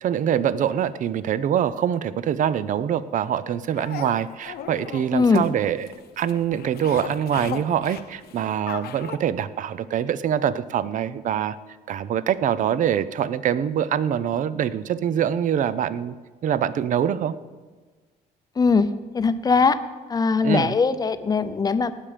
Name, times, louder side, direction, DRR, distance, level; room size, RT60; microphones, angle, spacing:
voice 1, 0.0-5.9 6.2-11.6 11.9-16.1 16.4-17.3 20.4-20.7, right 9 dB, 50° right, 16 dB, 0.6 m, -24 dB
sound 1, 3.7-9.2, left 9 dB, 70° left, 0.9 m, -37 dB
voice 2, 5.1-5.4 18.6-18.9 19.1-19.8 20.1-21.9, left 5 dB, 25° left, 12 dB, 0.7 m, -20 dB
18.5 x 7.5 x 5.0 m, 1.4 s
cardioid pair, 110°, 17 cm